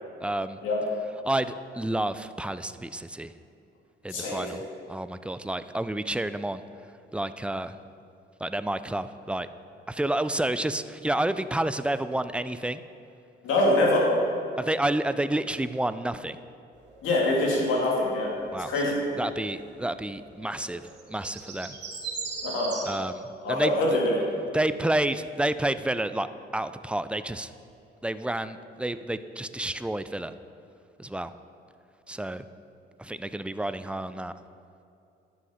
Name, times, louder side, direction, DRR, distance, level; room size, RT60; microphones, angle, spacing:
voice 1, 0.2-0.6 1.2-3.3 4.0-4.6 4.9-6.6 7.1-7.8 8.4-9.5 9.9-12.8 14.6-16.4 18.5-21.8 22.8-24.0 24.5-26.3 26.5-27.5 28.0-30.3 31.0-31.3 32.1-32.5 33.0-34.3, right 1 dB, 5° right, 12 dB, 0.4 m, -30 dB
voice 2, 4.1-4.5 13.4-14.1 17.0-18.3 18.6-19.0 22.4-22.7 23.4-24.2, left 1 dB, 85° left, -3 dB, 2.4 m, -24 dB
sound 1, 16.8-18.3 18.6-19.5 19.8-20.1 20.4-22.9, right 4 dB, 60° right, 2.4 m, -40 dB
11.0 x 6.4 x 5.7 m, 2.6 s
cardioid pair, 90°, 20 cm